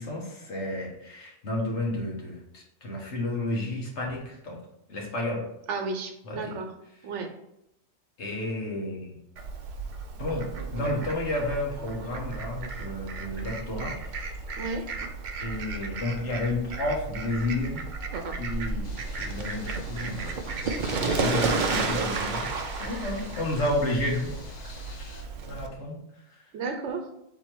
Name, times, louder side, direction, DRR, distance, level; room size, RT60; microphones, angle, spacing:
voice 1, 0.0-4.6 4.9-5.4 6.2-6.6 8.2-9.2 10.2-14.0 15.4-17.8 18.3-20.3 21.0-22.5 22.8-24.3 25.0-26.0, left 1 dB, 70° left, -1 dB, 1.4 m, -31 dB
voice 2, 5.7-6.7 7.0-7.3 14.6-14.8 26.5-27.1, right 4 dB, 80° right, 5 dB, 1.0 m, -32 dB
Fowl, 9.4-25.7, right 4 dB, 55° right, 0.5 m, -33 dB
sound 1, 18.8-25.2, left 3 dB, 50° left, 0.6 m, -46 dB
4.1 x 2.9 x 4.4 m, 0.80 s
omnidirectional pair, 1.2 m